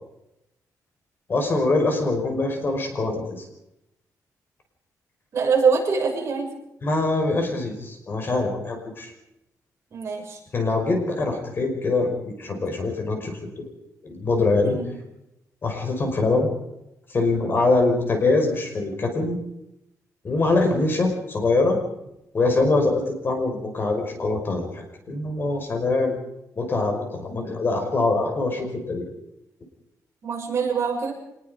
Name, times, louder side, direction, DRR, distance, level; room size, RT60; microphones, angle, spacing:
voice 1, 1.3-3.3 6.8-9.1 10.5-13.7 14.0-14.8 15.6-16.5 17.1-19.4 20.2-21.8 22.3-26.1 26.6-29.0, left 3 dB, 35° left, 4 dB, 5.4 m, -23 dB
voice 2, 5.3-6.5 9.9-10.4 14.6-14.8 30.2-31.1, right 5 dB, 45° right, 0 dB, 6.9 m, -23 dB
25.5 x 20.5 x 5.2 m, 0.84 s
wide cardioid pair, 160°, 6 cm